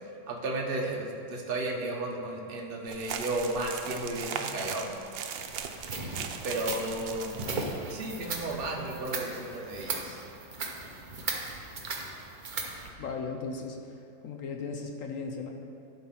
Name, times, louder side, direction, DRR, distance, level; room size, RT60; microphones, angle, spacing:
voice 1, 0.3-4.9 6.4-7.4 7.9-10.2, right 2 dB, 40° right, 0 dB, 1.0 m, -33 dB
sound 1, 2.9-7.7 8.0-8.1 8.4-8.5 8.9-9.1, right 7 dB, 80° right, 1.3 m, -38 dB
sound 2, 5.4-12.9, right 3 dB, 55° right, 0.5 m, -37 dB
voice 2, 13.0-13.9 14.2-15.5, left 4 dB, 65° left, 3 dB, 0.8 m, -36 dB
11.5 x 4.1 x 5.8 m, 2.8 s
omnidirectional pair, 2.0 m